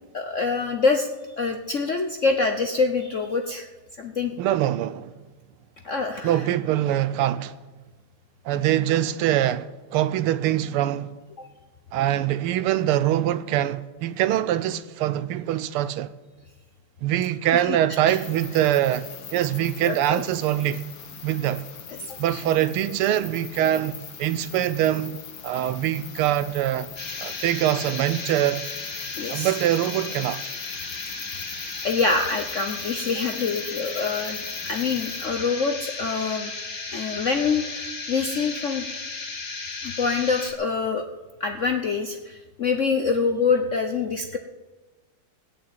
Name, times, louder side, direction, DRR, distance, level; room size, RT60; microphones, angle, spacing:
voice 1, 0.1-1.1 1.4-3.7 4.0-4.3 5.8-6.3 17.5-17.8 18.1-18.2 19.8-20.2 22.0-22.4 29.2-29.5 31.8-36.5 36.9-38.9 39.8-41.0 41.4-44.4, left 4 dB, 60° left, 0.8 m, -25 dB
voice 2, 4.4-5.1 6.2-7.6 8.4-11.1 11.9-16.1 17.0-20.8 21.2-21.7 22.2-26.9 27.2-28.7 29.3-30.4, right 12 dB, 85° right, 1.6 m, -24 dB
sound 1, 18.1-35.3, left 7 dB, 90° left, 2.2 m, -41 dB
sound 2, 27.0-40.5, left 3 dB, 30° left, 1.6 m, -35 dB
19.0 x 7.2 x 8.8 m
omnidirectional pair, 2.4 m